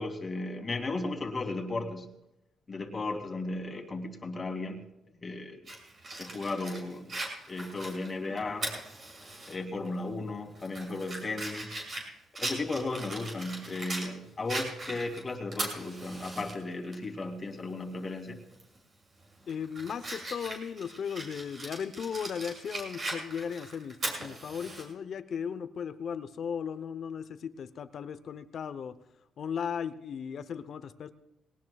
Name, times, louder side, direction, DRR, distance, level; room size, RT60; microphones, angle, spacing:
voice 1, 0.0-2.1 2.7-4.8 5.2-5.6 6.2-7.2 7.5-8.7 9.5-11.8 12.4-18.4, left 2 dB, 30° left, 4 dB, 2.5 m, -35 dB
Fire, 5.7-9.5 9.9-10.0 10.5-14.1 14.5-16.5 16.9-17.0 18.5-18.8 19.2-24.8, right 2 dB, 40° right, 6.2 m, -39 dB
voice 2, 19.5-29.0 29.4-31.1, left 7 dB, 60° left, 11 dB, 0.7 m, -36 dB
21.5 x 18.5 x 2.4 m, 0.86 s
cardioid pair, 90°, 0 cm